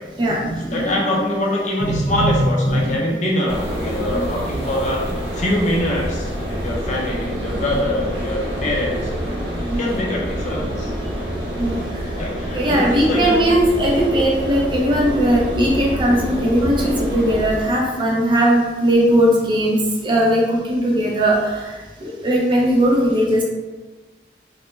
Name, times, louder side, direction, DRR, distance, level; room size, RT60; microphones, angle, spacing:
voice 1, 0.2-1.2 1.8-2.4 2.7-3.0 9.7-9.8 11.6-11.8 12.5-21.7 22.0-23.4, right 1 dB, 30° right, -3 dB, 0.4 m, -18 dB
voice 2, 0.7-5.0 5.3-10.9 12.2-13.4, left 1 dB, 40° left, -3 dB, 0.5 m, -24 dB
sound 1, 3.5-17.7, equal, 80° right, 0.6 m, -27 dB
2.1 x 2.1 x 3.0 m, 1.2 s
head